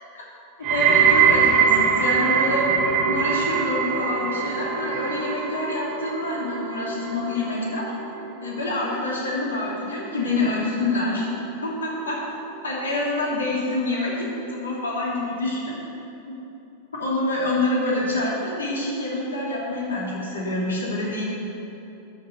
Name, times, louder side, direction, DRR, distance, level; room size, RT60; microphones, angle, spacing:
voice 1, 0.6-2.7 3.0-7.9 8.2-11.3 11.6-12.2 12.6-15.8 16.3-16.4 17.0-21.3, left 2 dB, 70° left, -4 dB, 2.9 m, -26 dB
sound 1, 0.6-11.8 12.1-12.6 13.3-13.4, right 6 dB, 40° right, 1.3 m, -24 dB
13.5 x 6.9 x 7.9 m, 3.0 s
figure-of-eight pair, 90°, 0 cm